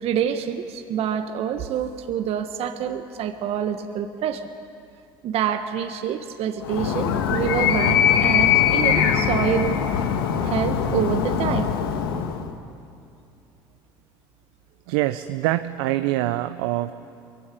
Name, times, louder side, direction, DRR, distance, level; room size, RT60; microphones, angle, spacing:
voice 1, 0.0-4.4 5.2-9.7 10.4-11.7, right 9 dB, 60° right, 7 dB, 1.4 m, -26 dB
Animal, 6.6-12.5, left 8 dB, 85° left, 1.7 m, -21 dB
voice 2, 14.9-16.9, right 15 dB, 80° right, 11 dB, 0.7 m, -25 dB
25.0 x 23.0 x 8.5 m, 2.6 s
hypercardioid pair, 70°, 12 cm